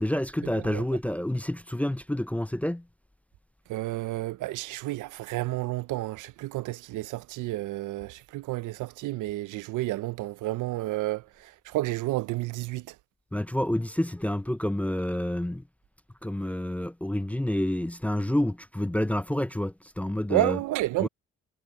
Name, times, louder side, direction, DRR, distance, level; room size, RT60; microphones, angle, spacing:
voice 1, 0.0-2.8 13.3-15.6 16.2-20.6 21.0-21.1, left 1 dB, 5° left, 0.5 m, -28 dB
voice 2, 3.7-13.0 20.3-21.1, right 17 dB, 85° right, 0.6 m, -31 dB
cardioid pair, 90°, 30 cm